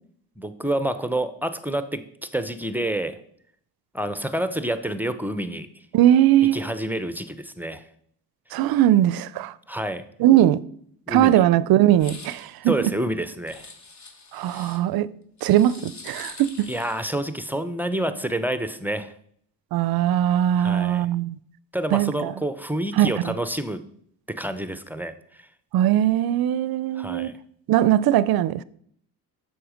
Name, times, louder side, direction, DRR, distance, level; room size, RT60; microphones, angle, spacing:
voice 1, 0.4-3.2 3.9-5.7 6.5-7.8 9.7-10.0 11.1-11.4 12.6-13.7 14.5-14.7 16.7-19.1 20.6-21.1 21.7-23.8 24.3-25.5 27.0-27.3, right 1 dB, 5° right, 0.6 m, -28 dB
voice 2, 5.9-6.6 8.5-9.5 10.2-10.6 11.1-12.7 14.3-15.1 15.4-16.7 19.7-21.4 21.9-22.3 22.9-23.3 25.7-27.3 27.7-28.6, right 12 dB, 55° right, 0.5 m, -20 dB
sound 1, 11.9-12.5 13.5-14.8 15.4-17.1, left 3 dB, 40° left, 1.5 m, -43 dB
7.8 x 6.4 x 5.0 m
supercardioid pair, 70°, 43 cm